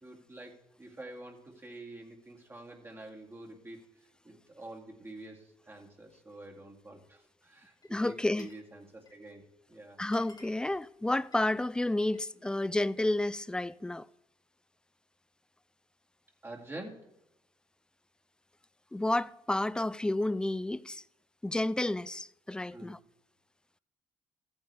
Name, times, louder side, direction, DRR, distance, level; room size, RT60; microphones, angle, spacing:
voice 1, 0.0-0.5 0.8-3.8 4.2-9.4 9.7-10.0 16.4-17.0 22.7-22.9, right 2 dB, 20° right, 2.2 m, -47 dB
Glass, 7.7-8.7 8.9-9.4 9.7-9.8 10.0-12.3 12.7-13.4, left 3 dB, 35° left, 1.6 m, -60 dB
voice 2, 7.9-8.5 10.0-14.1 18.9-21.0 21.4-23.0, left 1 dB, 10° left, 0.3 m, -31 dB
14.0 x 8.8 x 3.4 m
supercardioid pair, 75°, 11 cm